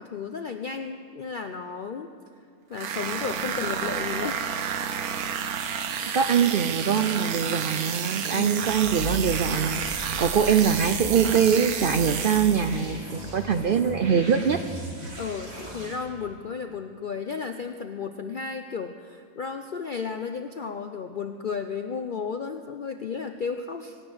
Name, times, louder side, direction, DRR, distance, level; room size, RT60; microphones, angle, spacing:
voice 1, 0.0-2.1 2.7-4.4 8.3-8.7 15.2-24.0, left 5 dB, 60° left, 6 dB, 0.5 m, -33 dB
sound 1, 2.7-12.9, right 7 dB, 85° right, 1.4 m, -31 dB
voice 2, 6.1-14.6, right 7 dB, 65° right, 8 dB, 0.5 m, -23 dB
sound 2, 8.6-16.0, equal, 45° right, 2.6 m, -38 dB
24.0 x 9.5 x 6.3 m, 2.3 s
omnidirectional pair, 1.5 m